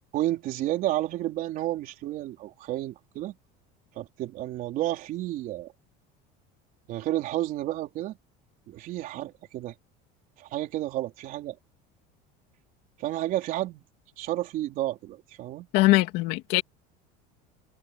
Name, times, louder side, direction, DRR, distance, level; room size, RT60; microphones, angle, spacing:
voice 1, 0.1-3.4 4.0-5.7 6.9-8.2 8.7-9.7 10.4-11.6 13.0-13.8 14.2-15.7, right 14 dB, 45° right, 4.0 m, -31 dB
voice 2, 15.7-16.6, left 19 dB, 65° left, 2.4 m, -21 dB
cardioid pair, 165°, 19 cm